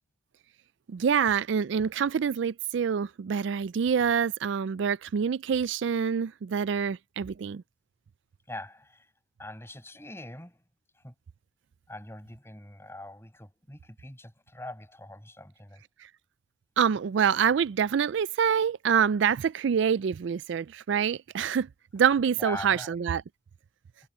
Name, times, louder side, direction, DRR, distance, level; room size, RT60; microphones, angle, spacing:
voice 1, 0.9-7.6 16.8-21.7 21.9-23.2, right 7 dB, 65° right, 0.3 m, -26 dB
voice 2, 8.5-9.1 9.4-10.6 10.9-11.1 11.9-15.8 22.4-23.0, left 1 dB, 10° left, 5.9 m, -43 dB
head